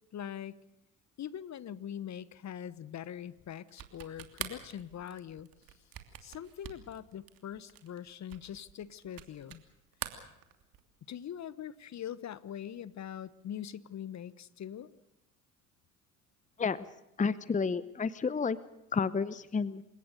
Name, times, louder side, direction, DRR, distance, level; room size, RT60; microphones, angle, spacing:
voice 1, 0.1-0.6 1.2-5.5 6.2-9.6 11.0-14.9, left 9 dB, 40° left, 18 dB, 1.1 m, -42 dB
sound 1, 3.7-9.7 9.9-11.0, right 11 dB, 50° right, 3.0 m, -44 dB
voice 2, 17.2-18.6 18.9-19.8, left 5 dB, 20° left, 18 dB, 0.9 m, -30 dB
28.5 x 17.0 x 6.7 m, 0.88 s
hypercardioid pair, 65°, 42 cm